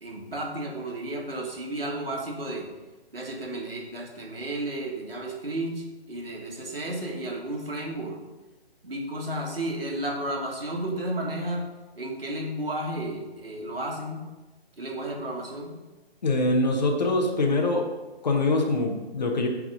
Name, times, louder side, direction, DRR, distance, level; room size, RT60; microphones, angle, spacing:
voice 1, 0.0-2.7 3.1-8.2 8.8-11.7 12.0-14.2 14.8-15.7, right 1 dB, 65° right, -1 dB, 1.7 m, -32 dB
voice 2, 16.2-17.9 18.2-19.5, left 2 dB, 40° left, 2 dB, 0.9 m, -24 dB
9.2 x 3.6 x 3.8 m, 1.2 s
figure-of-eight pair, 145°, 32 cm